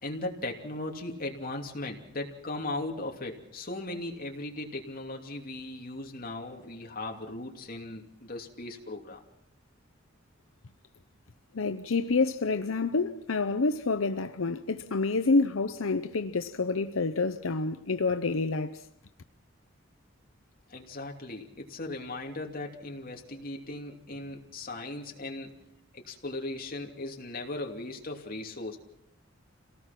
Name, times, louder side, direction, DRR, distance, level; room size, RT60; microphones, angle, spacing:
voice 1, 0.0-9.2 20.7-25.7 25.9-28.8, left 2 dB, 45° left, 2.9 m, -38 dB
voice 2, 11.5-18.9, left 3 dB, 85° left, 0.8 m, -28 dB
28.0 x 18.0 x 6.0 m
head